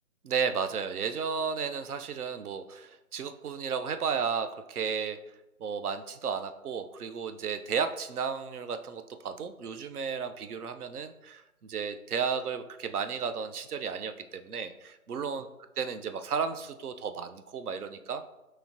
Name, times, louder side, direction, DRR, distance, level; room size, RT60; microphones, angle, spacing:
voice 1, 0.2-5.2 5.6-15.5 15.8-18.2, right 6 dB, 75° right, 9 dB, 0.5 m, -33 dB
4.8 x 3.1 x 2.5 m, 0.96 s
figure-of-eight pair, 170°, 45 cm